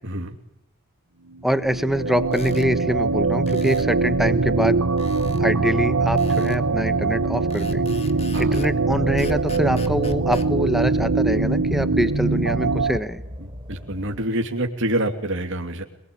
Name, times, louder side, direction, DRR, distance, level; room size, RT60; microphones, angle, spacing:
voice 1, 0.0-0.4 8.3-8.6 13.7-15.8, right 1 dB, 60° right, 3 dB, 2.8 m, -26 dB
voice 2, 1.4-4.8 5.4-7.8 8.4-13.2, equal, ahead, 10 dB, 1.2 m, -24 dB
sound 1, 1.4-13.0, right 3 dB, 90° right, 1.2 m, -22 dB
sound 2, 2.3-2.7 3.5-3.9 5.0-5.5 6.2-6.6 7.5-8.8 9.2-10.5, left 4 dB, 30° left, 1.7 m, -42 dB
sound 3, 6.9-14.3, equal, 25° right, 4.1 m, -38 dB
27.0 x 21.0 x 8.7 m, 0.82 s
head